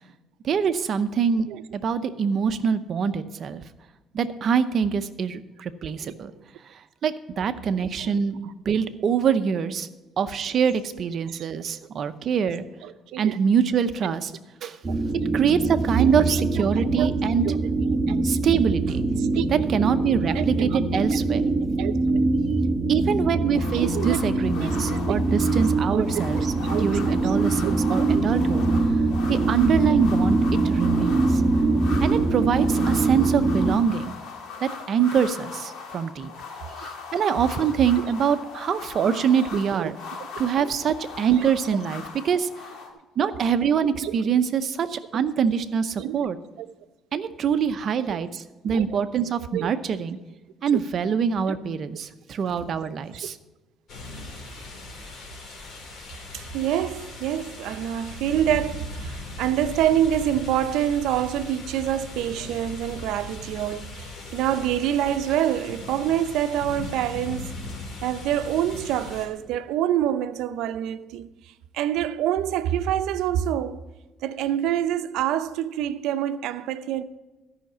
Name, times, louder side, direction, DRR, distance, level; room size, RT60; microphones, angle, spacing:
voice 1, 0.4-3.6 4.1-6.3 6.7-9.9 10.2-12.6 13.2-14.3 14.6-14.8 15.3-17.4 18.2-19.1 19.5-21.4 22.9-26.5 26.8-28.6 29.3-30.4 30.6-31.4 32.0-34.1 34.6-36.3 36.8-39.9 40.4-42.5 43.2-46.4 47.1-50.2 50.6-53.4, right 7 dB, 45° right, 0.7 m, -24 dB
voice 2, 12.8-13.3 14.0-14.1 14.6-14.7 16.2-16.4 16.9-17.1 17.4-17.5 18.1-18.2 19.2-19.5 20.3-20.8 21.3-21.4 21.8-22.2 23.7-24.2 24.6-25.2 25.9-26.0 26.6-27.2 28.1-28.2 39.8-39.9 40.6-40.7 41.3-41.5 44.0-44.1 46.0-46.2 46.6-46.7 48.6-48.8 49.5-49.7 56.3-67.5 68.0-71.3 71.7-73.8 74.2-77.0, right 11 dB, 80° right, 0.6 m, -26 dB
sound 1, 14.8-33.8, right 3 dB, 25° right, 1.2 m, -23 dB
sound 2, 23.5-42.9, left 5 dB, 75° left, 1.9 m, -39 dB
sound 3, 53.9-69.3, left 2 dB, 50° left, 3.1 m, -39 dB
13.0 x 5.8 x 7.4 m
cardioid pair, 135°, 0 cm